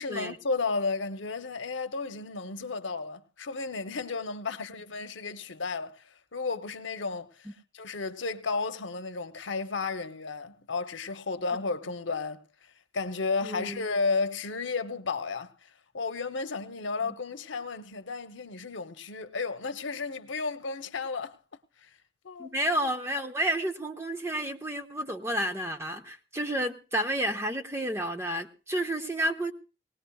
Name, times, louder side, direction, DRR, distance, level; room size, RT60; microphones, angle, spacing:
voice 1, 0.0-7.5 7.7-12.4 12.9-21.4 21.8-21.9 22.2-22.5, left 4 dB, 80° left, 0.9 m, -33 dB
voice 2, 13.4-13.8 17.0-17.1 22.4-29.5, right 1 dB, 15° right, 1.0 m, -31 dB
19.0 x 18.5 x 2.3 m
head